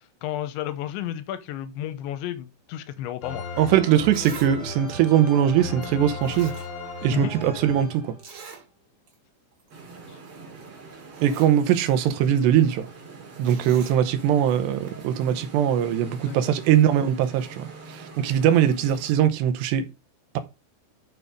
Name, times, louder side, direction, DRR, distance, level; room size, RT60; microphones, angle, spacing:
voice 1, 0.2-3.5 7.1-7.3 10.1-10.2 16.3-16.6 18.5-18.7, left 11 dB, 85° left, 3.1 m, -32 dB
sound 1, 3.2-8.5, left 3 dB, 40° left, 3.3 m, -36 dB
voice 2, 3.6-6.5 7.0-8.2 11.2-12.9 13.4-19.9, right 10 dB, 75° right, 2.9 m, -21 dB
Zipper (clothing), 4.1-4.5 4.9-5.0 5.8-5.9 6.2-7.2 7.4-7.5 8.2-8.6 9.1-9.2 9.5-9.7 10.6-10.7 11.0-11.6 13.5-14.0 14.9-15.0, right 6 dB, 55° right, 4.1 m, -43 dB
sound 2, 9.7-19.2, right 3 dB, 35° right, 3.3 m, -44 dB
6.9 x 6.8 x 5.0 m
omnidirectional pair, 5.2 m